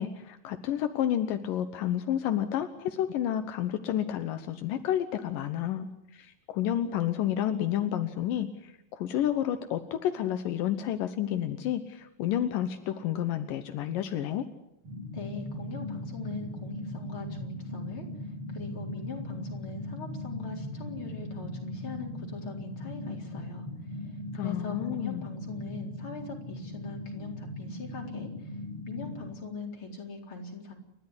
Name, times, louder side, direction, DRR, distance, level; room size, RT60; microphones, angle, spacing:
voice 1, 0.0-5.9 6.2-8.5 8.9-14.5 24.4-25.2, left 11 dB, 80° left, 8 dB, 2.7 m, -30 dB
sound 1, 14.8-29.3, left 1 dB, 40° right, 8.7 m, -39 dB
voice 2, 15.1-18.0 18.5-23.7 24.4-28.3 28.9-30.7, left 4 dB, 40° left, 1 dB, 4.8 m, -41 dB
29.5 x 13.0 x 9.9 m, 0.85 s
omnidirectional pair, 3.9 m